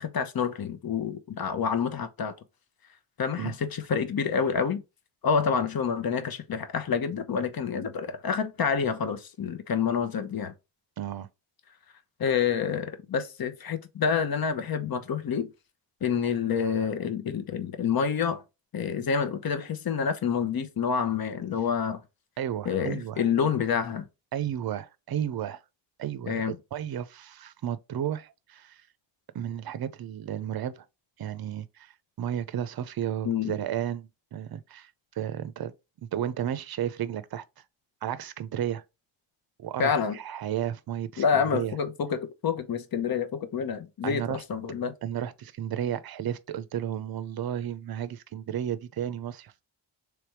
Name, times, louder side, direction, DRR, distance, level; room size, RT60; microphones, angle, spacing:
voice 1, 0.0-2.3 3.2-4.8 5.2-10.5 12.2-15.5 16.0-18.4 18.7-22.0 22.7-24.1 26.3-26.6 33.2-33.5 39.8-40.2 41.2-44.9, left 6 dB, 45° left, 0.8 m, -28 dB
voice 2, 11.0-11.3 22.4-23.3 24.3-25.6 26.0-28.8 29.3-30.8 31.2-35.7 36.0-37.4 38.0-38.8 39.6-41.8 44.0-44.4 45.0-49.7, right 10 dB, 50° right, 0.6 m, -33 dB
3.4 x 3.2 x 4.5 m
cardioid pair, 90°, 48 cm